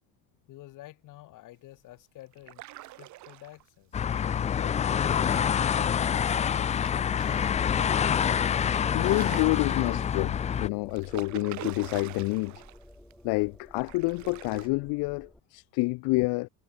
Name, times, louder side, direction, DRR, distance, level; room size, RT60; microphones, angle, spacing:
voice 1, 0.5-2.6 3.0-4.0 4.5-5.9 6.4-7.0, left 16 dB, 55° left, 2.7 m, -50 dB
sound 1, 2.3-3.7 4.9-6.0 6.8-7.9 8.3-8.4 8.7-10.2 10.9-12.8 13.1-13.2 13.8-14.7, right 17 dB, 50° right, 0.9 m, -45 dB
sound 2, 3.9-10.7, left 8 dB, 20° left, 0.4 m, -26 dB
sound 3, 8.2-15.4, left 1 dB, ahead, 3.2 m, -53 dB
voice 2, 8.9-12.6 13.2-16.5, left 27 dB, 80° left, 0.6 m, -28 dB
cardioid pair, 180°, 37 cm